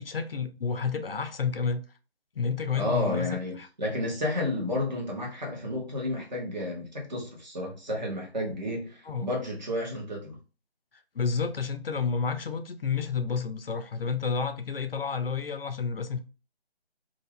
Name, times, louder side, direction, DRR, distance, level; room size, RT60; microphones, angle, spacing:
voice 1, 0.0-1.8 2.4-3.7 9.1-9.3 11.2-16.2, left 5 dB, 65° left, 0.5 m, -30 dB
voice 2, 2.7-10.4, left 1 dB, 45° right, 1.2 m, -31 dB
2.8 x 2.4 x 3.3 m
figure-of-eight pair, 160°, 32 cm